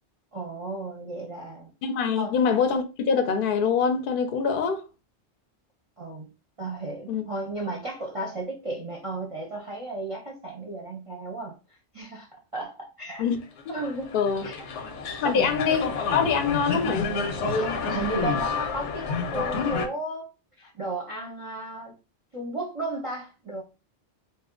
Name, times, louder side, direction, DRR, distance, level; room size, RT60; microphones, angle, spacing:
voice 1, 0.3-1.7 2.1-2.4 6.0-6.3 6.6-13.3 13.7-14.1 14.4-14.7 15.2-15.6 17.4-20.3 20.6-21.9 22.3-23.6, right 2 dB, 35° right, 0.6 m, -34 dB
voice 2, 1.8-4.8 7.1-7.2 13.2-13.4 14.1-14.4 15.2-17.1, left 6 dB, 60° left, 0.6 m, -24 dB
sound 1, 13.6-19.9, left 5 dB, 85° left, 0.9 m, -29 dB
2.7 x 2.1 x 3.6 m
omnidirectional pair, 1.2 m